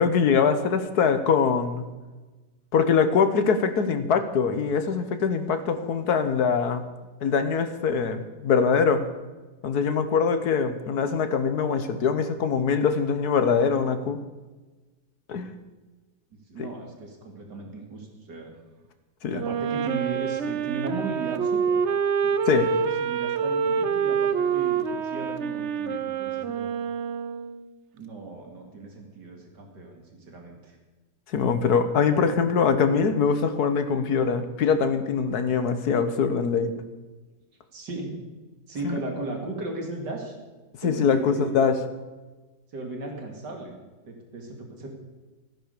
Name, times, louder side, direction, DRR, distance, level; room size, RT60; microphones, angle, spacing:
voice 1, 0.0-1.9 2.7-6.8 7.2-9.0 9.6-14.2 15.3-15.6 16.6-16.7 19.2-19.4 22.5-22.7 31.3-36.7 38.8-39.0 40.8-41.8, left 6 dB, 65° left, 9 dB, 1.6 m, -23 dB
voice 2, 16.3-18.5 19.3-21.8 22.2-26.7 27.9-30.8 37.7-38.2 38.7-40.4 40.8-41.6 42.7-43.7 44.1-44.9, right 3 dB, 85° right, 2 dB, 2.9 m, -36 dB
Wind instrument woodwind instrument, 19.3-27.7, right 6 dB, 55° right, 0.8 m, -26 dB
15.0 x 10.0 x 6.7 m, 1.2 s
omnidirectional pair, 1.8 m